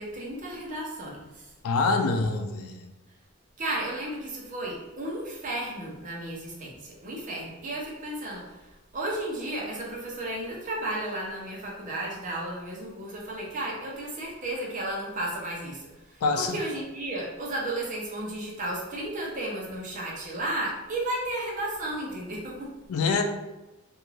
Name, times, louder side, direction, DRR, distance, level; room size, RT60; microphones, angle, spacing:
voice 1, 0.0-1.5 3.6-22.7, right 1 dB, 35° right, -3 dB, 0.7 m, -33 dB
voice 2, 1.6-2.9 16.2-16.5 22.9-23.2, left 4 dB, 85° left, 5 dB, 0.4 m, -25 dB
2.6 x 2.3 x 3.1 m, 1.0 s
head